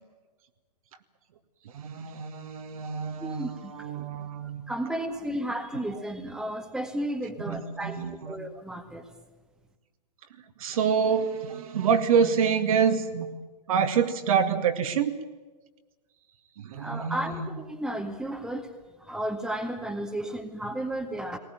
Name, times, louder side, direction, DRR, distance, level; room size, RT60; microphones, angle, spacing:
voice 1, 1.7-3.5 3.8-4.6 7.5-8.4 10.6-13.3 13.7-15.1 16.6-17.5, right 7 dB, 55° right, 6 dB, 2.2 m, -26 dB
voice 2, 3.2-3.9 4.3-8.0 8.2-9.1 16.7-21.4, right 1 dB, 5° right, 5 dB, 1.8 m, -33 dB
19.5 x 19.5 x 9.0 m, 1.3 s
hypercardioid pair, 120°, 21 cm